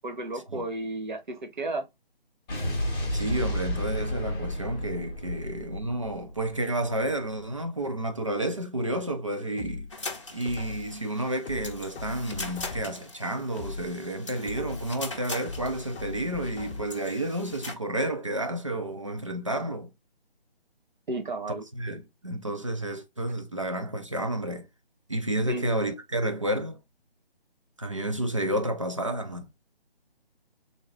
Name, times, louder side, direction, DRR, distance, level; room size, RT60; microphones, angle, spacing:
voice 1, 0.0-1.9 21.1-21.6 25.5-25.7, right 2 dB, 50° right, 0.9 m, -33 dB
Explosion, 2.5-6.8, left 1 dB, 5° left, 0.9 m, -32 dB
voice 2, 3.1-9.9 10.3-19.9 21.5-24.7 25.1-26.8 27.8-29.5, right 1 dB, 30° right, 0.4 m, -31 dB
sound 1, 9.6-11.0 11.5-13.1 13.5-15.0 15.5-17.1 17.5-17.6, left 4 dB, 85° left, 0.7 m, -39 dB
sound 2, 9.9-17.7, left 3 dB, 30° left, 0.6 m, -41 dB
3.8 x 2.6 x 3.1 m
figure-of-eight pair, 170°, 31 cm